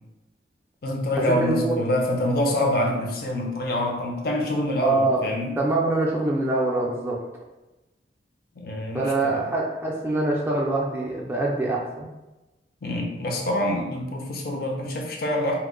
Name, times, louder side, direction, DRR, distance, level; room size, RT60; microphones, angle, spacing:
voice 1, 0.8-5.5 8.6-9.5 12.8-15.6, left 1 dB, 55° left, 0 dB, 0.5 m, -26 dB
voice 2, 1.4-1.8 4.8-5.2 5.6-7.2 8.9-12.1, right 2 dB, 10° right, -3 dB, 0.3 m, -24 dB
2.9 x 2.0 x 3.6 m, 1.0 s
head